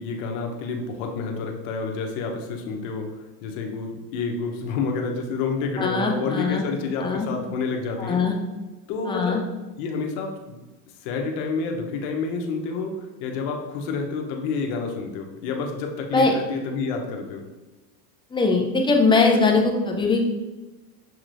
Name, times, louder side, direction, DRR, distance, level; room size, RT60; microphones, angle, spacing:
voice 1, 0.0-3.1 3.4-8.3 8.9-9.4 9.8-10.6 11.0-17.5, left 4 dB, 65° left, 3 dB, 1.0 m, -29 dB
voice 2, 5.8-6.6 7.0-7.3 8.0-8.3 9.0-9.4 16.1-16.3 18.3-20.3, left 3 dB, 10° left, 1 dB, 0.4 m, -21 dB
6.6 x 3.0 x 2.6 m, 1.1 s
supercardioid pair, 110°, 48 cm